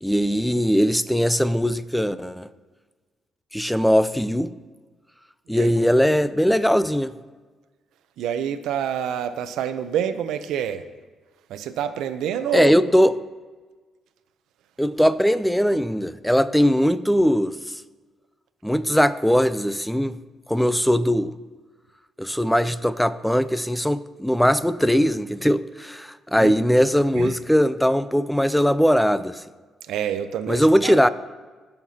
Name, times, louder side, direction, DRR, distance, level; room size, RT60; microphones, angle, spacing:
voice 1, 0.0-2.5 3.5-4.5 5.5-7.1 12.5-13.1 14.8-17.8 18.6-20.2 20.5-21.4 22.2-29.4 30.5-31.1, equal, ahead, 14 dB, 0.4 m, -20 dB
voice 2, 8.2-10.9 11.5-12.7 26.4-26.6 27.1-27.4 29.8-31.0, right 9 dB, 85° right, 10 dB, 0.6 m, -27 dB
17.5 x 6.6 x 2.8 m, 1.4 s
cardioid pair, 90°, 0 cm